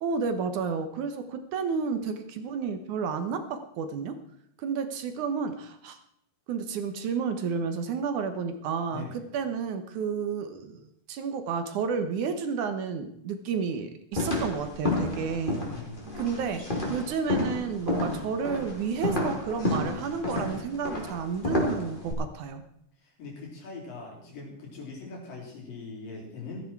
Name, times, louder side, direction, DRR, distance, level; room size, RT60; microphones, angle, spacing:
voice 1, 0.0-4.2 4.6-6.0 6.5-15.6 16.2-22.6, right 5 dB, 65° right, 8 dB, 2.4 m, -31 dB
voice 2, 8.9-9.2 15.7-16.5 23.0-26.7, left 4 dB, 75° left, -2 dB, 6.1 m, -41 dB
sound 1, 14.1-22.1, left 1 dB, 15° left, 3.0 m, -30 dB
15.5 x 14.0 x 4.6 m, 0.71 s
omnidirectional pair, 4.0 m